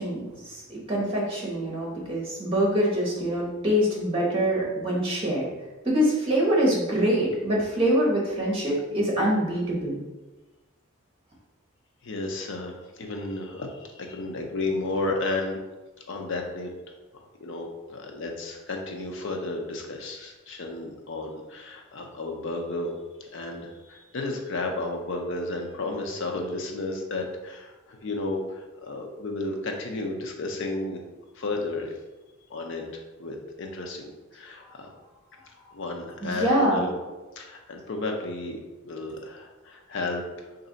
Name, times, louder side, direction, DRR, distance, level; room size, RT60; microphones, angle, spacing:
voice 1, 0.0-5.5 5.8-9.9 36.2-36.9, equal, 25° right, -4 dB, 1.0 m, -24 dB
voice 2, 12.0-15.6 16.1-16.7 17.1-22.9 23.2-31.0 31.4-31.9 32.5-34.9 35.7-36.9 37.4-38.6 38.8-40.2, left 2 dB, 60° left, 2 dB, 0.6 m, -33 dB
3.2 x 2.6 x 3.8 m, 1.1 s
head